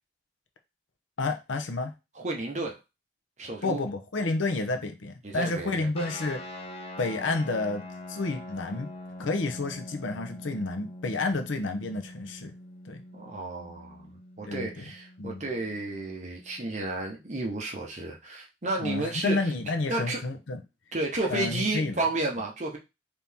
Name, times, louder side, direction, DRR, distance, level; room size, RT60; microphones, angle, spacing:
voice 1, 1.2-1.9 3.6-6.4 7.0-8.9 9.2-12.5 12.8-13.0 14.5-14.9 15.2-15.4 18.8-20.6 21.3-22.0, left 3 dB, 90° left, 0.7 m, -30 dB
voice 2, 2.1-2.8 3.4-3.8 5.2-5.9 13.1-14.1 14.4-19.5 19.9-20.2 20.9-22.8, right 2 dB, 40° right, 0.9 m, -32 dB
sound 1, 5.9-16.9, left 1 dB, 30° left, 0.8 m, -44 dB
4.2 x 2.8 x 3.5 m
head